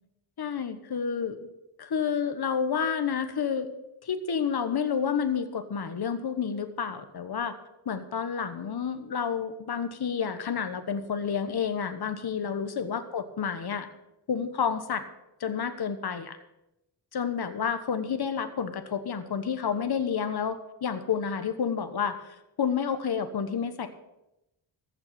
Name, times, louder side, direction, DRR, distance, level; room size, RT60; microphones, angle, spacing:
voice 1, 0.4-1.5 1.8-3.7 4.0-7.6 7.8-13.9 14.3-15.0 15.4-16.4 17.1-23.9, left 7 dB, 55° left, 9 dB, 1.3 m, -30 dB
14.5 x 5.8 x 9.0 m, 0.90 s
wide cardioid pair, 95°, 45 cm